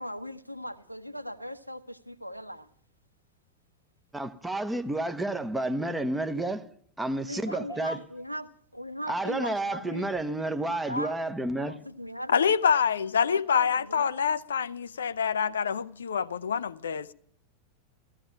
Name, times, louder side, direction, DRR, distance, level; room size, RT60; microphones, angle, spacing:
voice 1, 0.0-2.7 7.3-11.2 11.7-12.4 13.3-14.1, equal, 90° left, 0.9 m, -39 dB
voice 2, 4.1-6.6 7.0-8.0 9.1-11.8, right 2 dB, 5° right, 1.1 m, -30 dB
voice 3, 12.3-17.1, left 7 dB, 70° left, 0.5 m, -26 dB
15.5 x 14.5 x 5.7 m
figure-of-eight pair, 90°, 0 cm